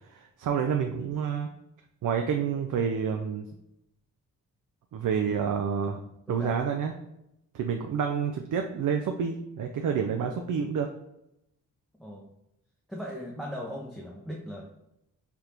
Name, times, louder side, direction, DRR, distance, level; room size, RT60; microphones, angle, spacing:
voice 1, 0.1-1.5 2.0-3.4 4.9-6.0 6.3-6.9 7.5-10.9, right 7 dB, 65° right, 4 dB, 0.5 m, -28 dB
voice 2, 6.3-6.6 12.0-12.3 12.9-14.7, equal, ahead, -2 dB, 0.6 m, -38 dB
3.5 x 2.5 x 4.4 m, 0.83 s
cardioid pair, 85°, 34 cm